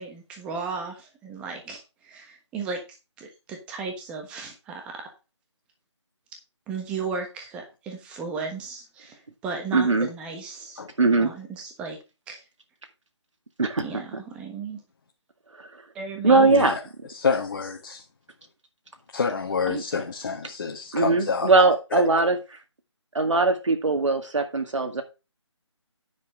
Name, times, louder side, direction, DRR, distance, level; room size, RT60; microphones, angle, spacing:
voice 1, 0.0-2.8 3.2-5.1 6.7-10.8 11.2-12.0 12.3-12.4 13.8-14.8 15.9-16.5, right 4 dB, 5° right, 1.3 m, -35 dB
voice 2, 9.7-10.1 11.0-11.3 13.6-14.0 15.6-15.7 16.2-16.8 19.7-19.8 20.9-22.6 23.1-25.0, right 3 dB, 85° right, 1.9 m, -21 dB
voice 3, 16.5-16.8 17.1-18.0 19.1-21.5 21.9-22.0, left 5 dB, 40° left, 1.7 m, -28 dB
9.8 x 6.3 x 4.8 m
figure-of-eight pair, 165°, 16 cm